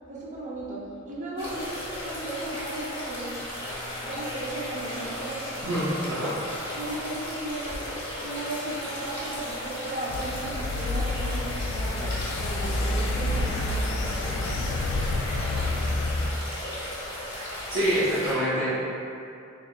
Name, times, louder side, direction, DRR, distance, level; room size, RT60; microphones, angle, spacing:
voice 1, 0.1-3.4 4.0-6.2 6.7-7.9 8.2-14.4, right 1 dB, 40° right, -5 dB, 0.7 m, -36 dB
sound 1, 1.4-18.3, left 1 dB, 25° left, 1.0 m, -35 dB
voice 2, 5.6-6.3 17.7-18.9, equal, 80° right, -11 dB, 0.8 m, -26 dB
sound 2, 10.1-16.3, left 2 dB, 70° left, 0.3 m, -28 dB
3.6 x 3.5 x 2.4 m, 2.5 s
head